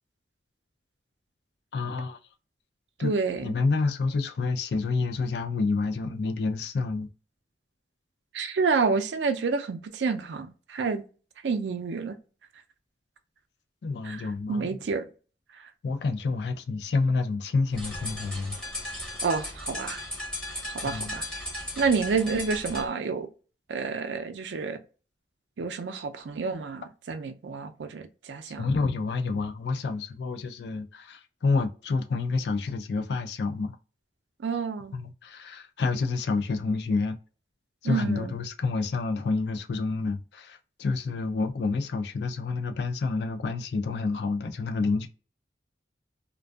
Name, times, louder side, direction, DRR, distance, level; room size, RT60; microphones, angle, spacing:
voice 1, 1.7-2.2 3.0-7.1 13.8-14.8 15.8-18.6 20.8-21.2 28.6-33.8 34.9-37.2 37.8-45.1, left 4 dB, 70° left, 0.4 m, -28 dB
voice 2, 3.0-3.5 8.3-11.0 11.4-12.2 14.0-14.2 14.5-15.1 19.2-20.0 20.8-21.3 21.8-23.3 23.7-24.8 25.6-28.7 34.4-34.9 37.8-38.3, right 4 dB, 85° right, 0.4 m, -29 dB
sound 1, 17.7-22.9, left 1 dB, 5° left, 0.6 m, -36 dB
2.5 x 2.2 x 2.3 m
head